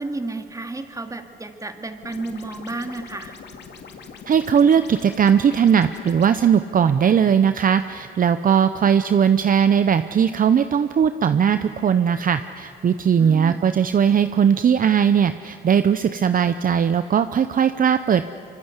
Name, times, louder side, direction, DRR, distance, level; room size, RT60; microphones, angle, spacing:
voice 1, 0.0-3.4 13.2-13.7, right 2 dB, 15° right, 6 dB, 2.3 m, -32 dB
sound 1, 2.0-6.4, left 5 dB, 60° left, 2.5 m, -42 dB
voice 2, 4.3-18.3, right 7 dB, 45° right, 11 dB, 0.8 m, -18 dB
25.0 x 24.5 x 8.2 m, 2.8 s
cardioid pair, 90°, 20 cm